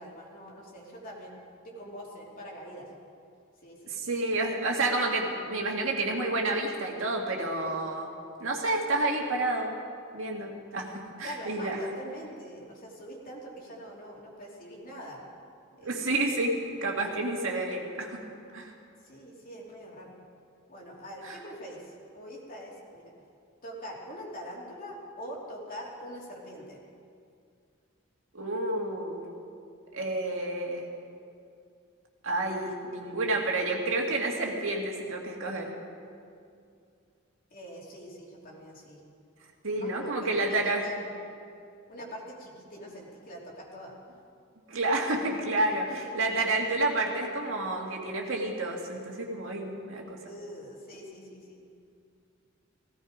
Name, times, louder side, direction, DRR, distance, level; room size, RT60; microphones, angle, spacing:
voice 1, 0.0-1.4 1.6-2.9 3.6-4.1 11.2-15.2 15.8-16.1 19.0-20.1 20.7-23.1 23.6-26.8 37.5-39.0 39.7-41.1 41.9-44.0 45.6-45.8 46.0-46.1 50.2-51.6, equal, 45° left, -2 dB, 3.0 m, -43 dB
voice 2, 3.9-8.1 8.4-9.8 10.1-11.8 15.8-18.2 18.5-18.7 21.3-21.4 28.3-29.2 29.9-30.9 32.2-35.7 39.6-40.9 44.7-50.2, right 2 dB, 70° right, 0 dB, 2.2 m, -30 dB
17.0 x 16.0 x 5.1 m, 2.4 s
head